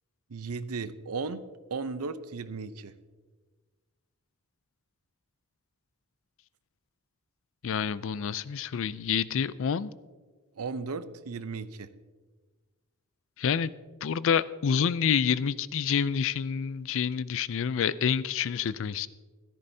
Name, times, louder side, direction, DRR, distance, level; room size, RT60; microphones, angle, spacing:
voice 1, 0.3-1.4 1.7-2.9 10.6-11.9, right 4 dB, 85° right, 0.6 m, -35 dB
voice 2, 7.6-9.9 13.4-13.7 14.0-19.1, left 7 dB, 60° left, 0.4 m, -28 dB
15.5 x 13.5 x 2.7 m
head